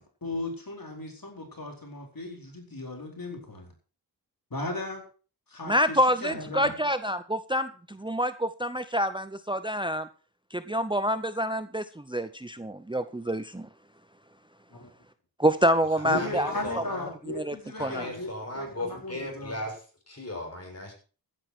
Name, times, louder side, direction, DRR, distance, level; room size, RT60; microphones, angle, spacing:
voice 1, 0.2-3.7 4.5-5.0 5.5-6.7 14.8-14.9 16.0-18.3 18.5-19.6, left 2 dB, 60° left, 1 dB, 4.5 m, -36 dB
voice 2, 5.7-10.1 10.5-13.7 15.4-16.8 17.3-18.1, equal, 10° right, 12 dB, 0.7 m, -27 dB
voice 3, 16.0-17.1 17.8-20.9, left 1 dB, 40° left, 2 dB, 6.4 m, -37 dB
15.5 x 10.0 x 4.5 m, 0.37 s
wide cardioid pair, 50°, 40 cm